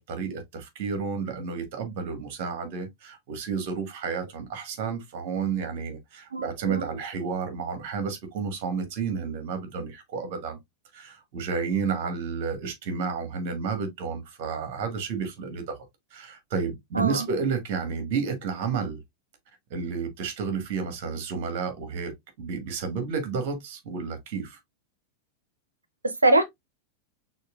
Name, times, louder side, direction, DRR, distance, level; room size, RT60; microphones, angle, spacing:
voice 1, 0.0-10.6 10.9-15.8 16.1-19.0 19.7-24.6, right 5 dB, 50° right, 1.5 m, -31 dB
voice 2, 6.3-6.8 16.9-17.3 26.0-26.4, right 2 dB, 80° right, 0.8 m, -23 dB
6.2 x 2.8 x 2.4 m
figure-of-eight pair, 90°, 0 cm